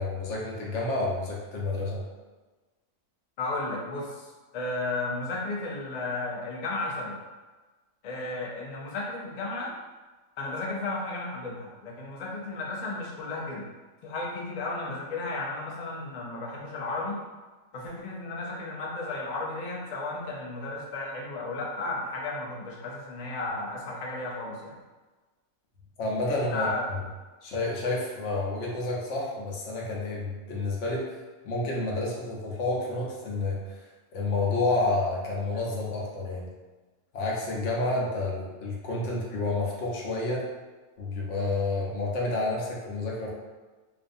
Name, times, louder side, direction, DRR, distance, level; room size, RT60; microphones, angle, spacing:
voice 1, 0.0-2.0 26.0-27.0 27.4-31.1 31.4-33.8 34.1-36.5 37.1-40.4 41.0-43.3, left 2 dB, 75° left, -3 dB, 0.9 m, -29 dB
voice 2, 3.4-4.2 4.5-7.2 8.0-9.7 10.4-13.7 14.0-17.2 17.7-24.8 26.3-26.9, left 2 dB, 55° left, -3 dB, 0.4 m, -34 dB
2.5 x 2.3 x 2.6 m, 1.3 s
omnidirectional pair, 1.3 m